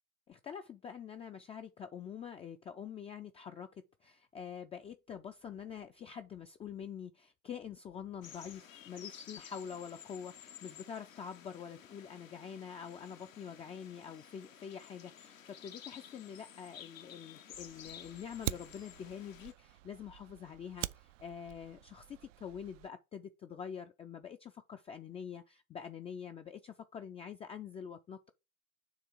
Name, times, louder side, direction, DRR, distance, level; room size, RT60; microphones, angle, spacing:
voice 1, 0.3-28.3, left 7 dB, 15° left, 0.4 m, -46 dB
sound 1, 8.2-19.5, left 9 dB, 80° left, 0.9 m, -53 dB
Fire, 17.5-22.9, right 14 dB, 70° right, 0.5 m, -45 dB
7.2 x 3.0 x 6.0 m
figure-of-eight pair, 75°, 40 cm